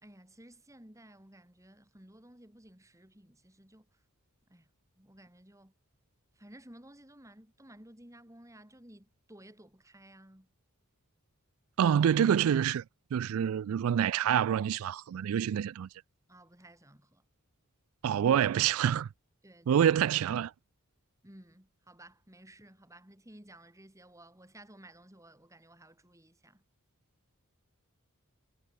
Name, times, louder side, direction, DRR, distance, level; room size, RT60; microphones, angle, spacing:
voice 1, 0.0-3.9 4.5-4.7 5.0-5.7 6.4-10.5 16.3-17.2 19.4-19.9 21.2-26.6, right 1 dB, 15° right, 3.8 m, -55 dB
voice 2, 11.8-12.8 13.1-15.9 18.0-19.1 19.7-20.5, right 9 dB, 70° right, 0.3 m, -26 dB
head